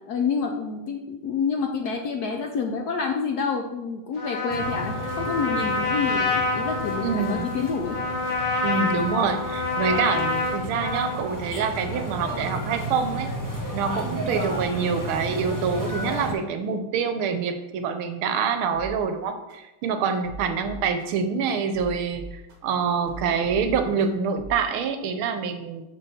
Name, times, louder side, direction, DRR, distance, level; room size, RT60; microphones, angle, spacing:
voice 1, 0.1-8.0, left 5 dB, 75° left, 3 dB, 0.9 m, -28 dB
Trumpet, 4.2-11.3, left 3 dB, 50° left, 0.5 m, -27 dB
sound 1, 4.5-16.3, right 1 dB, 10° left, 1.0 m, -33 dB
voice 2, 7.0-7.5 8.6-13.3 13.7-22.2 22.6-25.8, right 6 dB, 75° right, 8 dB, 1.5 m, -26 dB
sound 2, 18.7-18.9 19.5-19.6 20.1-21.0 21.6-22.7 23.0-24.0 24.4-24.6, right 2 dB, 45° right, 1.6 m, -39 dB
6.0 x 4.6 x 6.3 m, 1.0 s
omnidirectional pair, 2.4 m